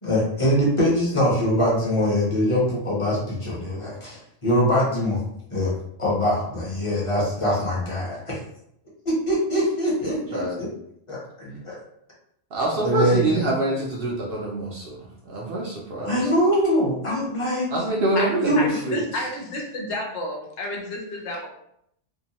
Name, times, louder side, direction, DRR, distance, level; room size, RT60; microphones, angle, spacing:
voice 1, 0.0-5.2 5.5-5.7 6.0-8.4 9.0-10.7 11.1-11.8 12.8-13.3 16.0-17.7 18.4-18.6, equal, 30° left, -6 dB, 0.8 m, -23 dB
voice 2, 12.5-15.0 15.3-16.3 17.7-19.0, right 2 dB, 60° right, -3 dB, 0.7 m, -25 dB
voice 3, 18.1-21.5, left 1 dB, 70° left, 0 dB, 0.9 m, -31 dB
2.7 x 2.2 x 2.8 m, 0.73 s
omnidirectional pair, 1.2 m